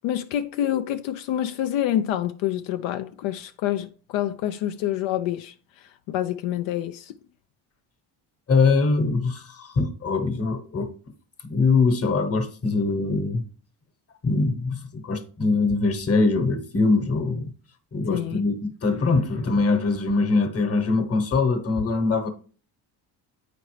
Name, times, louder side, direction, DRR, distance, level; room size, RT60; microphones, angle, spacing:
voice 1, 0.0-7.1 18.1-18.4, left 12 dB, 75° left, 0.5 m, -27 dB
voice 2, 8.5-10.9 11.4-13.4 14.2-17.5 17.9-22.3, left 3 dB, 30° left, 1.1 m, -23 dB
8.5 x 5.1 x 3.2 m
cardioid pair, 115°, 47 cm